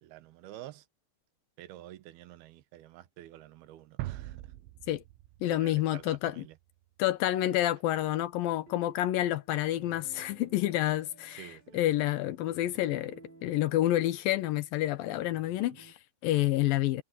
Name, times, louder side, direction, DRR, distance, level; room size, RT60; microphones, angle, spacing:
voice 1, 0.0-0.9 1.6-4.5 5.5-6.6 11.4-11.6 15.4-15.8, right 14 dB, 70° right, 2.5 m, -49 dB
sound 1, 4.0-6.8, right 16 dB, 90° right, 3.2 m, -42 dB
voice 2, 5.4-6.4 7.0-17.0, left 14 dB, 85° left, 2.0 m, -29 dB
sound 2, 8.5-15.9, right 3 dB, 45° right, 8.8 m, -57 dB
omnidirectional pair, 5.5 m